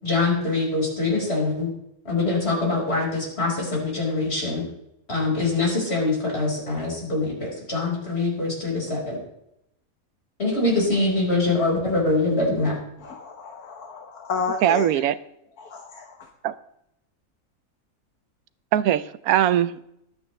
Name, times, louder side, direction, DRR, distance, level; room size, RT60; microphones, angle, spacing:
voice 1, 0.0-1.7 2.1-4.6 5.1-9.2 10.4-12.7, left 2 dB, 45° left, 5.4 m, -24 dB
voice 2, 13.0-15.0 15.6-16.3, left 5 dB, 90° left, 1.7 m, -32 dB
voice 3, 14.6-15.1 16.4-16.5 18.7-19.9, right 11 dB, 80° right, 1.1 m, -21 dB
22.0 x 8.8 x 3.3 m
omnidirectional pair, 1.5 m